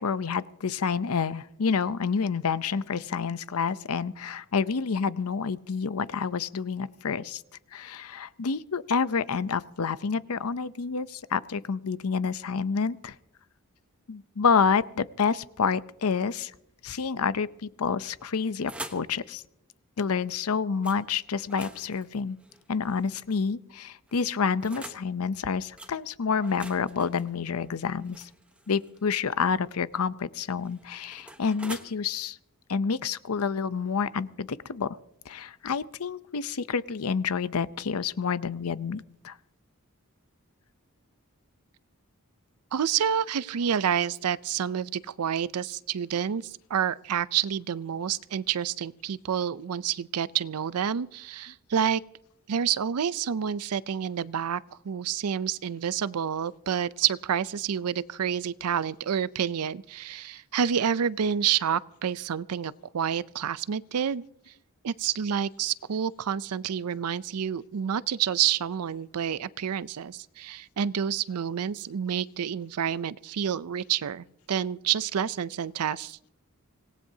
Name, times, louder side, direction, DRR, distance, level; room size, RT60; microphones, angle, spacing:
voice 1, 0.0-7.4 7.7-13.1 14.1-16.5 16.8-19.4 20.0-22.4 22.7-28.3 28.7-32.4 32.7-34.9 35.3-39.3, left 5 dB, 70° left, 0.6 m, -28 dB
sound 1, 18.1-19.1 20.8-21.0 21.4-23.3 24.1-25.1 25.8-25.9 26.4-29.1 30.2-31.9, right 1 dB, 5° right, 1.0 m, -45 dB
voice 2, 42.7-52.0 52.5-64.2 64.8-76.2, right 8 dB, 85° right, 0.5 m, -28 dB
25.5 x 18.5 x 2.8 m
head